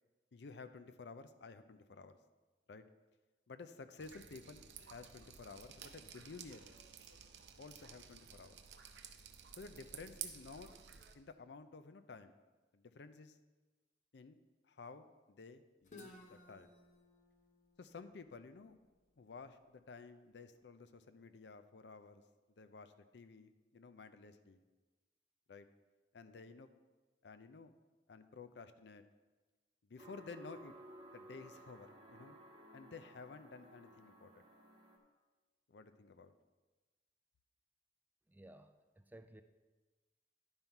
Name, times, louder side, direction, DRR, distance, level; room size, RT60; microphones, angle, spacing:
voice 1, 0.3-2.2 2.7-2.8 3.5-6.7 7.6-8.6 9.6-10.7 11.1-12.3 12.7-13.4 14.1-14.4 14.7-16.7 17.8-18.8 19.2-22.2 22.6-24.6 25.5-25.7 26.1-26.7 27.2-27.7 28.1-29.0 29.8-30.8 31.1-32.4 32.7-34.5 35.7-36.3, left 4 dB, 80° left, 10 dB, 0.5 m, -53 dB
Drip, 4.0-11.1, right 8 dB, 85° right, 0.7 m, -53 dB
Guitar, 15.8-19.6, left 2 dB, 45° left, 0.9 m, -60 dB
sound 1, 30.0-35.0, right 1 dB, 25° right, 1.1 m, -57 dB
voice 2, 38.3-39.4, right 1 dB, 10° right, 8 dB, 0.3 m, -57 dB
10.5 x 5.6 x 4.5 m, 1.2 s
head